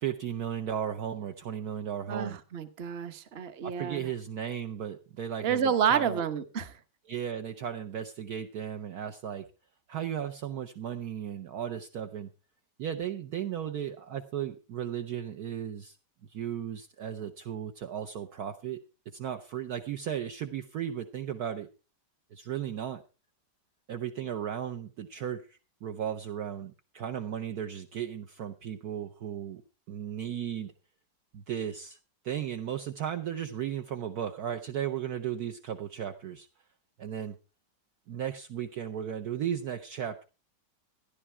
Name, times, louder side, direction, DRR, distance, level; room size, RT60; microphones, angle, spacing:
voice 1, 0.0-2.4 3.6-6.2 7.1-9.4 9.9-12.3 12.8-16.0 16.3-18.8 19.1-21.7 22.3-23.0 23.9-29.6 29.9-30.7 31.3-32.0 32.2-36.5 37.0-37.4 38.1-40.2, right 9 dB, 65° right, 5 dB, 1.3 m, -35 dB
voice 2, 2.1-4.1 5.4-6.7, right 7 dB, 40° right, 10 dB, 1.2 m, -29 dB
13.5 x 11.0 x 4.4 m, 0.32 s
omnidirectional pair, 1.9 m